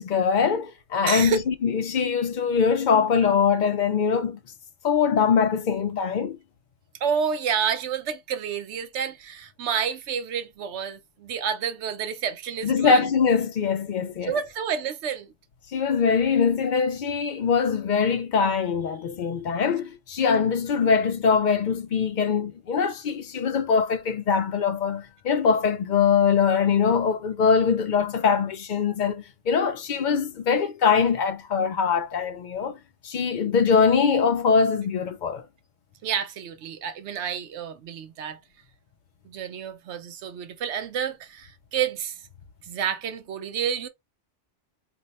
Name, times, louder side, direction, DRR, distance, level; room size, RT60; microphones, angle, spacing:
voice 1, 0.0-4.4 4.8-6.4 12.6-14.4 15.7-32.8 33.0-35.4, left 6 dB, 60° left, 0.5 m, -22 dB
voice 2, 1.1-1.4 7.0-13.0 14.3-15.3 36.0-38.4 39.2-42.2 42.7-43.9, right 7 dB, 75° right, 0.9 m, -29 dB
2.6 x 2.1 x 3.9 m
omnidirectional pair, 1.2 m